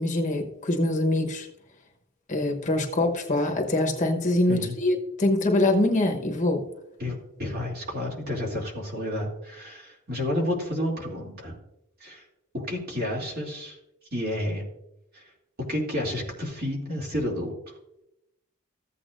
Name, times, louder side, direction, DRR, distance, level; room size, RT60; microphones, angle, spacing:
voice 1, 0.0-1.5 2.3-6.6, left 2 dB, 35° left, 2 dB, 1.1 m, -24 dB
voice 2, 7.0-11.5 12.0-12.2 12.5-13.8 14.1-14.7 15.1-15.2 15.7-17.5, left 1 dB, 45° right, -2 dB, 2.7 m, -30 dB
15.0 x 8.4 x 2.5 m, 0.86 s
head